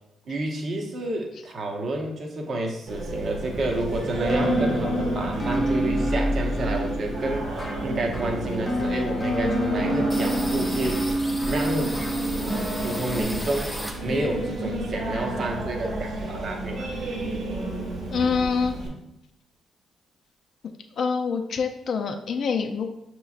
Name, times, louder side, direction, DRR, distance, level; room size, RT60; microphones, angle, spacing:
voice 1, 0.2-7.5 7.8-11.0 11.5-11.9 12.3-13.7 14.0-16.9, right 1 dB, 50° right, 1 dB, 0.9 m, -30 dB
Singing, 2.9-18.9, right 1 dB, 75° right, 1.5 m, -30 dB
sound 1, 4.3-13.2, equal, 15° left, 1.3 m, -28 dB
sound 2, 10.1-14.4 14.8-16.2 16.4-16.5 16.8-17.5, equal, ahead, 0.7 m, -36 dB
voice 2, 18.1-18.7 21.0-22.9, left 5 dB, 60° left, 5 dB, 0.4 m, -25 dB
6.0 x 3.0 x 2.4 m, 0.85 s
cardioid pair, 90°, 0 cm